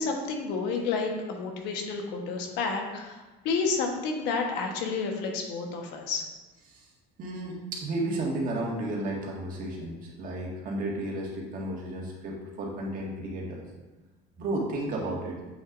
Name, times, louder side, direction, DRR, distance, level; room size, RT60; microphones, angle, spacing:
voice 1, 0.0-6.2, left 4 dB, 75° left, 2 dB, 1.3 m, -30 dB
voice 2, 7.2-13.6 14.4-15.4, right 1 dB, 50° right, -2 dB, 1.9 m, -33 dB
7.8 x 6.3 x 2.6 m, 1.2 s
cardioid pair, 125°, 18 cm